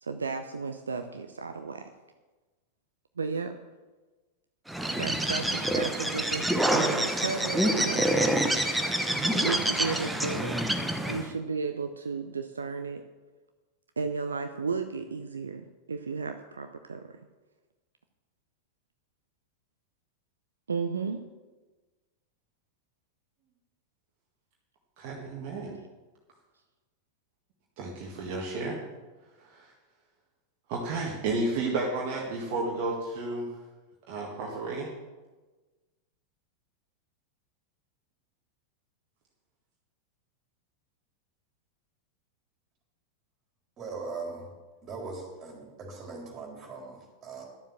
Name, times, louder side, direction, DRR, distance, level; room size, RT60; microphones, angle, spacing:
voice 1, 0.0-1.9 3.2-3.5 5.0-8.6 9.3-10.6 11.1-13.0 14.0-17.2 20.7-21.2 25.8-25.9, right 4 dB, 75° right, 7 dB, 0.6 m, -34 dB
Bird, 4.7-11.3, right 1 dB, 5° right, 1.1 m, -27 dB
voice 2, 25.0-25.7 27.8-28.8 29.4-29.7 30.7-33.5 34.1-34.9, right 2 dB, 45° right, -2 dB, 1.8 m, -32 dB
voice 3, 43.8-44.5 44.8-47.4, right 4 dB, 30° right, 0 dB, 4.0 m, -40 dB
12.0 x 7.3 x 7.2 m, 1.2 s
figure-of-eight pair, 90°, 0 cm